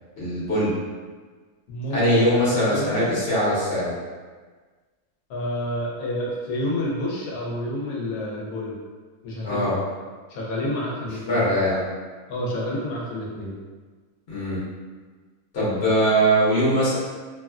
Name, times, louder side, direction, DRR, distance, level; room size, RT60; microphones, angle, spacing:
voice 1, 0.2-0.7 1.9-4.0 9.4-9.7 11.3-11.9 14.3-14.6 15.5-17.0, equal, 50° left, -9 dB, 1.1 m, -21 dB
voice 2, 1.7-3.1 5.3-8.8 9.2-9.8 10.3-11.5 12.3-13.5, left 1 dB, 80° left, -4 dB, 1.1 m, -29 dB
3.1 x 2.3 x 2.2 m, 1.4 s
omnidirectional pair, 1.5 m